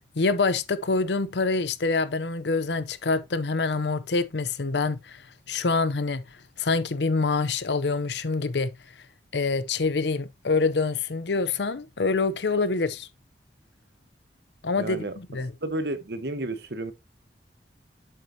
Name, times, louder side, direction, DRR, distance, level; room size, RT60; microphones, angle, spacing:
voice 1, 0.2-5.2 5.5-6.2 6.6-8.7 9.3-13.1 14.6-15.5, left 3 dB, 70° left, 0.7 m, -26 dB
voice 2, 14.7-15.1 15.6-16.9, right 2 dB, 60° right, 1.2 m, -31 dB
7.8 x 7.5 x 2.8 m
head